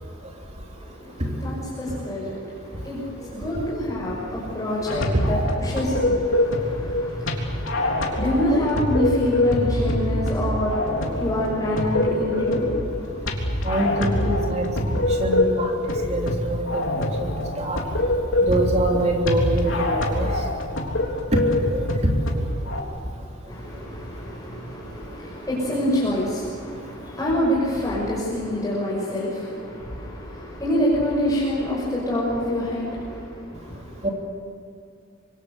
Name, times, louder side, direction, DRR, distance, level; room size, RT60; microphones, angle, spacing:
voice 1, 0.8-13.7 23.5-34.1, left 1 dB, 20° left, -6 dB, 6.0 m, -27 dB
sound 1, 4.9-22.8, left 1 dB, 80° left, 3.6 m, -25 dB
voice 2, 13.6-14.7 15.2-16.9 17.2-17.8 18.4-20.4 21.3-22.0 22.3-22.5 34.0-34.1, right 1 dB, 35° right, 0 dB, 3.4 m, -25 dB
26.5 x 24.0 x 6.9 m, 2.4 s
head